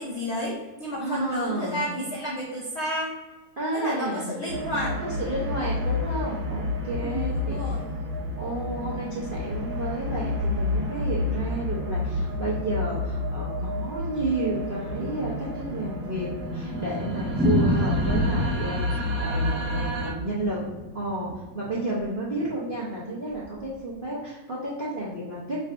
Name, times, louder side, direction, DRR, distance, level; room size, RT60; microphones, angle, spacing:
voice 1, 0.0-3.1 3.7-5.0 7.0-7.8, equal, 80° left, -3 dB, 0.6 m, -31 dB
voice 2, 1.0-1.8 3.6-4.4 5.2-7.6 8.4-20.6 20.9-25.6, right 1 dB, 60° right, -7 dB, 0.5 m, -31 dB
sound 1, 4.5-20.1, left 2 dB, 85° right, 1.6 m, -30 dB
Thunder, 16.3-21.8 22.0-22.1 22.4-22.5 22.7-22.8 23.4-23.7, equal, ahead, 0.8 m, -28 dB
3.8 x 2.5 x 4.6 m, 1.2 s
omnidirectional pair, 2.1 m